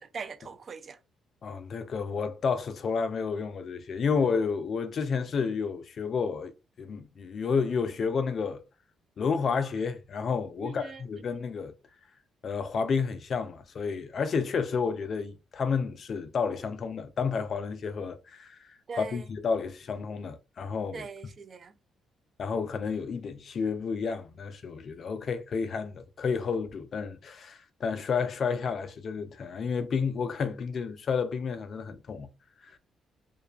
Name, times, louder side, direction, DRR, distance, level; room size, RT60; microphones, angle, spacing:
voice 1, 0.1-1.0 10.6-11.0 11.3-11.4 18.9-19.3 20.9-21.7, right 5 dB, 45° right, 0.3 m, -41 dB
voice 2, 1.4-6.5 6.8-8.6 9.2-11.7 12.4-21.1 22.4-32.3 32.6-32.7, left 5 dB, 55° left, 0.4 m, -31 dB
2.4 x 2.3 x 2.3 m
cardioid pair, 90°, 0 cm